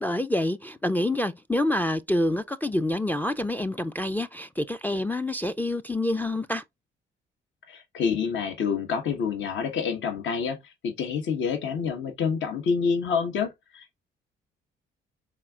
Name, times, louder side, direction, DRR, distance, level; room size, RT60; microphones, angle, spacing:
voice 1, 0.0-6.6, left 1 dB, 10° left, 0.3 m, -27 dB
voice 2, 7.7-14.0, left 6 dB, 70° left, 1.2 m, -28 dB
4.3 x 3.6 x 2.3 m
cardioid pair, 90°, 20 cm